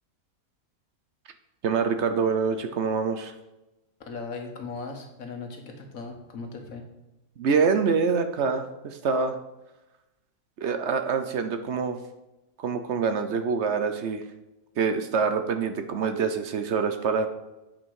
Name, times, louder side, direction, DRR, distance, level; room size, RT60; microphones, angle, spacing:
voice 1, 1.6-3.3 7.4-9.4 10.6-12.0 12.6-14.2 14.8-17.3, right 5 dB, 60° right, 8 dB, 0.8 m, -25 dB
voice 2, 4.1-6.8, left 4 dB, 65° left, 3 dB, 1.7 m, -38 dB
8.7 x 5.2 x 4.7 m, 1.0 s
omnidirectional pair, 1.6 m